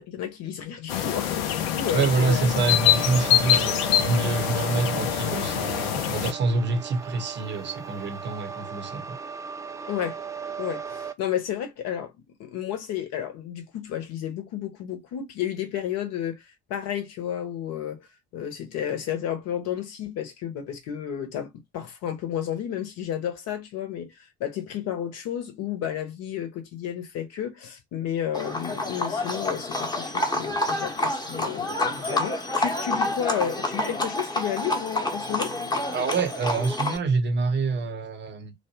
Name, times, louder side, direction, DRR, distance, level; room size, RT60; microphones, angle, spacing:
voice 1, 0.0-2.5 9.9-10.2 10.6-12.1 12.4-16.4 16.7-18.1 18.3-24.1 24.4-35.5, left 10 dB, 50° left, 1.0 m, -32 dB
sound 1, 0.9-6.3, left 10 dB, 65° left, 0.6 m, -24 dB
voice 2, 1.9-9.2 35.9-38.5, right 3 dB, 35° right, 0.8 m, -26 dB
sound 2, 2.7-11.1, right 6 dB, 10° right, 0.3 m, -37 dB
Livestock farm animals working animals, 28.3-37.0, left 2 dB, 10° left, 0.9 m, -28 dB
3.0 x 2.1 x 2.8 m
figure-of-eight pair, 55°, 32 cm